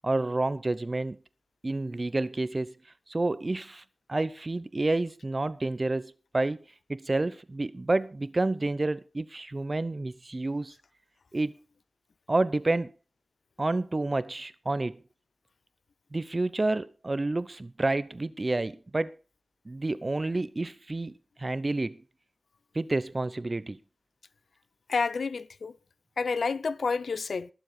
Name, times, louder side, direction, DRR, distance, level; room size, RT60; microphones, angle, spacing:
voice 1, 0.0-1.2 1.6-2.7 3.1-3.8 4.1-6.6 6.9-10.7 11.3-11.5 12.3-12.9 13.6-15.0 16.1-19.1 19.7-22.0 22.7-23.8, right 2 dB, 30° right, 0.7 m, -29 dB
voice 2, 24.9-25.7 26.2-27.5, left 4 dB, 75° left, 0.6 m, -29 dB
20.5 x 7.2 x 4.3 m
wide cardioid pair, 80°, 0 cm